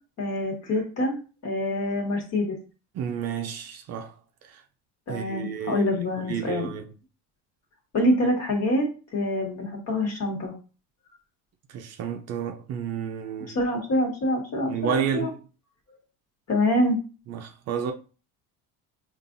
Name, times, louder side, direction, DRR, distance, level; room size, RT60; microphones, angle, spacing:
voice 1, 0.2-1.1 1.4-2.5 5.1-6.7 7.9-8.9 9.1-10.5 13.5-15.3 16.5-17.0, left 1 dB, 45° left, 1.5 m, -25 dB
voice 2, 2.9-4.1 4.5-4.6 5.1-5.9 6.2-6.9 11.7-13.6 14.7-15.3 17.3-17.9, right 7 dB, 45° right, 0.5 m, -31 dB
5.3 x 2.5 x 2.6 m
cardioid pair, 130°, 36 cm